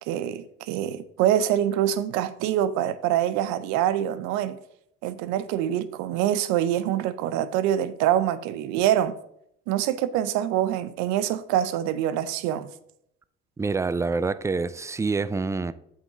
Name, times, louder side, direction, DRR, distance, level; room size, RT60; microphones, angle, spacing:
voice 1, 0.1-4.6 5.0-9.1 9.7-12.7, right 11 dB, 75° right, 0.6 m, -25 dB
voice 2, 13.6-15.7, right 4 dB, 10° right, 0.4 m, -26 dB
7.9 x 5.5 x 3.8 m
hypercardioid pair, 65°, 29 cm